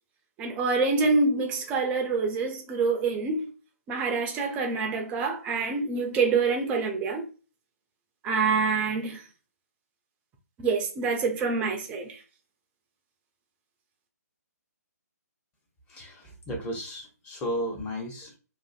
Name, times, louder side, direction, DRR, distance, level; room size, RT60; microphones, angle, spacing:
voice 1, 0.4-3.5 3.9-7.3 8.2-9.2 10.6-12.2, right 4 dB, 15° right, 0.4 m, -26 dB
voice 2, 15.9-18.3, equal, 15° left, 0.7 m, -34 dB
2.5 x 2.5 x 2.3 m
figure-of-eight pair, 140°, 9 cm